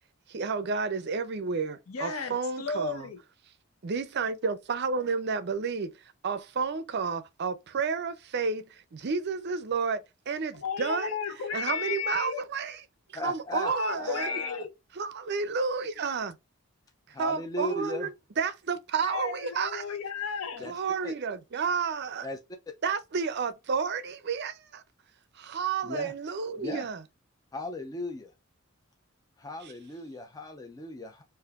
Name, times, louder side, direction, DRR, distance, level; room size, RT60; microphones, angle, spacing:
voice 1, 0.3-3.1 3.8-6.0 6.2-11.1 11.5-12.8 13.1-14.4 15.0-16.4 17.2-19.9 20.6-22.3 22.8-24.8 25.4-27.0, right 5 dB, 50° right, 0.5 m, -31 dB
voice 2, 1.9-3.2 10.5-12.4 13.5-14.7 19.0-20.7, left 5 dB, 80° left, 0.8 m, -34 dB
voice 3, 13.1-13.7 14.0-14.6 17.1-18.1 20.6-20.7 21.0-21.1 22.2-22.4 25.8-26.1 26.6-26.9 27.5-28.3 29.4-31.2, left 1 dB, 15° left, 0.4 m, -37 dB
4.7 x 2.5 x 2.4 m
head